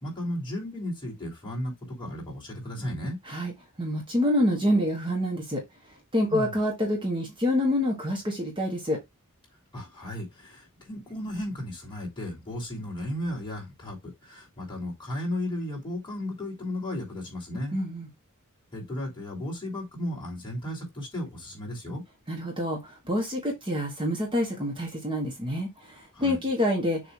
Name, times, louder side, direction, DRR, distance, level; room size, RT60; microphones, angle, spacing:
voice 1, 0.0-3.2 6.3-6.5 9.7-17.8 18.7-22.0 26.1-26.4, left 1 dB, 20° left, 3.3 m, -34 dB
voice 2, 3.8-5.6 6.1-9.0 17.7-18.1 22.3-27.1, left 1 dB, 25° right, 1.5 m, -27 dB
6.8 x 3.0 x 4.8 m
head